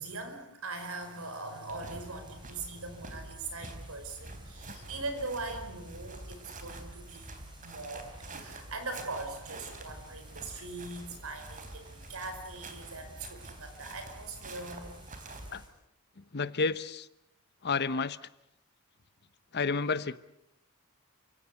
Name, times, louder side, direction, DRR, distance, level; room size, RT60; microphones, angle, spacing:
voice 1, 0.0-7.3 7.6-14.9, right 3 dB, 75° right, 7 dB, 5.2 m, -41 dB
sound 1, 0.7-15.7, right 1 dB, 20° right, 6.6 m, -58 dB
sound 2, 1.7-15.6, right 2 dB, 40° right, 3.4 m, -47 dB
voice 2, 16.3-17.1 17.6-18.2 19.5-20.2, left 4 dB, 50° left, 15 dB, 0.9 m, -30 dB
29.5 x 17.0 x 8.3 m, 0.83 s
head